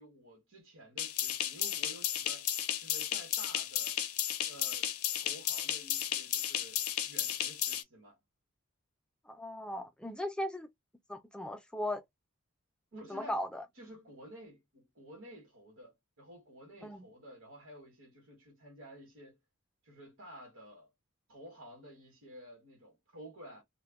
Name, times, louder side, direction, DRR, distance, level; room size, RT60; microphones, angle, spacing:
voice 1, 0.0-2.5 2.8-4.0 4.4-4.9 5.2-8.2 12.9-13.4 13.8-19.4 19.8-20.9 21.3-23.6, right 1 dB, 60° right, 1.1 m, -52 dB
sound 1, 1.0-7.8, left 11 dB, 80° left, 0.5 m, -34 dB
voice 2, 9.3-10.7 11.1-12.0 13.1-13.6 16.8-17.0, left 1 dB, 5° left, 0.4 m, -37 dB
2.2 x 2.1 x 3.4 m
head